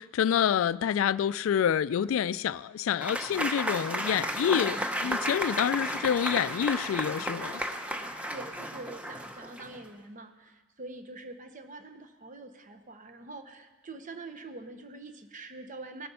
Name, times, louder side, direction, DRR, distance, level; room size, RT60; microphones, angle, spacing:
voice 1, 0.0-7.6, left 8 dB, 85° left, 0.3 m, -27 dB
Applause / Crowd, 3.0-9.8, equal, 5° right, 0.8 m, -33 dB
voice 2, 8.3-16.1, right 2 dB, 40° right, 1.0 m, -45 dB
18.5 x 8.5 x 5.5 m
head